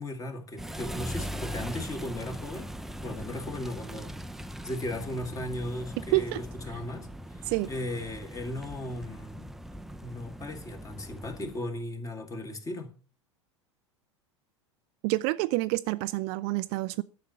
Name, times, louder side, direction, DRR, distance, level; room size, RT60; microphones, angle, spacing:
voice 1, 0.0-2.7 3.0-4.2 4.6-7.4 7.7-9.6 10.0-12.9, left 1 dB, 20° left, 2.1 m, -36 dB
sound 1, 0.6-11.6, equal, ahead, 0.6 m, -40 dB
voice 2, 15.0-17.0, right 21 dB, 50° right, 0.4 m, -28 dB
12.0 x 6.7 x 6.8 m
figure-of-eight pair, 85°, 15 cm